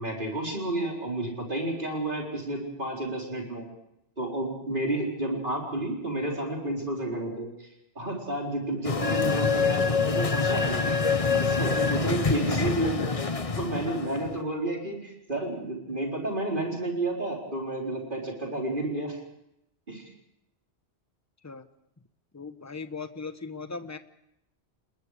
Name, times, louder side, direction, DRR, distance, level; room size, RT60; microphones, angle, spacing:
voice 1, 0.0-3.6 4.2-7.7 8.0-11.0 11.4-13.2 13.6-19.2 19.9-20.1, right 1 dB, 50° right, -1 dB, 4.4 m, -31 dB
sound 1, 8.8-14.4, left 4 dB, 35° left, 1.1 m, -26 dB
voice 2, 22.3-24.0, left 4 dB, 15° left, 10 dB, 0.9 m, -38 dB
29.5 x 21.0 x 5.0 m, 0.81 s
omnidirectional pair, 1.1 m